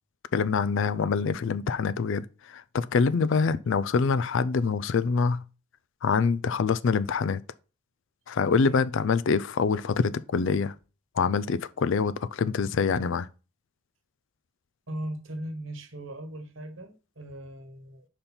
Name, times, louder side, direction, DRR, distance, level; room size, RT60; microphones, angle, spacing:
voice 1, 0.3-5.4 6.0-7.4 8.3-10.7 11.2-13.3, left 5 dB, 55° left, 0.4 m, -25 dB
voice 2, 14.9-18.1, right 1 dB, 55° right, 1.2 m, -38 dB
5.2 x 4.3 x 5.6 m
head